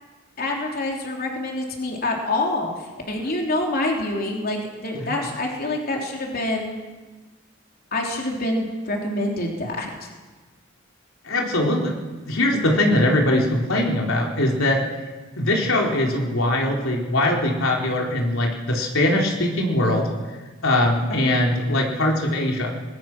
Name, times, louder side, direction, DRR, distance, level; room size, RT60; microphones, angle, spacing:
voice 1, 0.4-6.8 7.9-10.1 21.1-21.2, left 2 dB, 50° left, 0 dB, 3.6 m, -26 dB
voice 2, 11.2-11.9 12.3-14.8 15.4-20.1 20.6-22.7, left 1 dB, 90° left, -1 dB, 3.9 m, -21 dB
23.5 x 21.0 x 6.2 m, 1.3 s
head